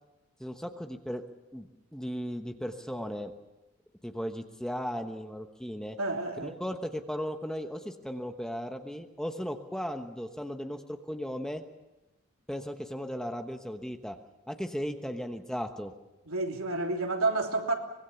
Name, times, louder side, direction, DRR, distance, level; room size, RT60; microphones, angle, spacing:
voice 1, 0.4-1.2 1.5-3.3 4.0-6.0 6.4-11.6 12.5-14.2 14.5-15.9, equal, 5° left, 1.1 m, -36 dB
voice 2, 6.0-6.5 16.3-17.7, right 2 dB, 80° right, 3.2 m, -29 dB
24.5 x 21.0 x 7.0 m
head